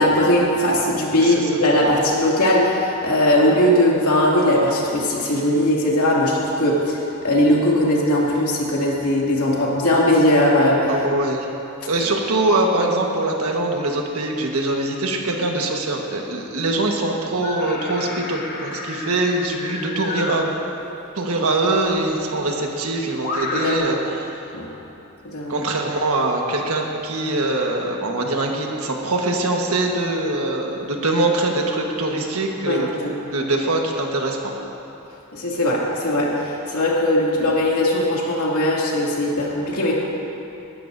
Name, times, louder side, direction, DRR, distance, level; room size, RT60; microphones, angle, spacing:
voice 1, 0.0-11.0 11.8-11.9 23.6-23.9 24.5-24.7 25.2-25.5 32.7-33.3 35.3-39.9, left 1 dB, 85° left, -4 dB, 2.5 m, -19 dB
voice 2, 1.2-1.5 10.9-11.5 11.9-20.6 21.1-24.4 25.5-34.5, right 2 dB, 80° right, 1 dB, 1.4 m, -23 dB
sound 1, 17.4-20.5 21.9-22.0 23.2-23.8, left 3 dB, 40° left, 1.0 m, -30 dB
19.0 x 12.5 x 2.7 m, 3.0 s
head